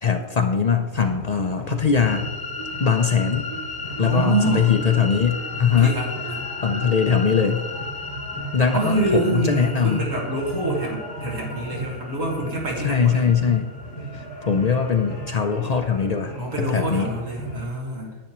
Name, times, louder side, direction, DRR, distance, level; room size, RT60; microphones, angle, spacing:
voice 1, 0.0-2.3 2.8-3.5 4.0-5.9 6.6-7.7 8.5-10.1 12.8-13.7 14.1-16.3 16.7-17.1, left 6 dB, 65° left, 5 dB, 0.4 m, -21 dB
sound 1, 0.9-17.6, right 1 dB, 20° left, 2.4 m, -37 dB
sound 2, 2.0-16.3, left 4 dB, 35° left, 0.8 m, -36 dB
Marimba xylophone, 2.1-3.0 3.5-9.0, right 4 dB, 40° right, 0.5 m, -42 dB
voice 2, 4.0-4.8 5.7-6.5 8.7-13.3 16.3-18.2, right 2 dB, 75° right, -2 dB, 2.1 m, -26 dB
10.5 x 9.2 x 3.0 m, 1.3 s
omnidirectional pair, 1.3 m